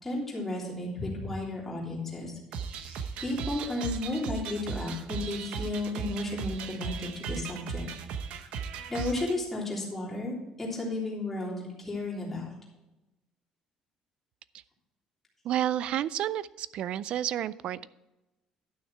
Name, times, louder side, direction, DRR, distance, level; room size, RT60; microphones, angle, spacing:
voice 1, 0.0-2.3 2.8-7.8 8.9-12.5, left 2 dB, 10° left, -5 dB, 3.2 m, -33 dB
sound 1, 2.5-9.3, right 6 dB, 70° right, 0.8 m, -37 dB
voice 2, 15.4-17.9, right 11 dB, 50° right, 19 dB, 0.4 m, -30 dB
12.0 x 6.4 x 4.6 m, 0.99 s
cardioid pair, 165°, 2 cm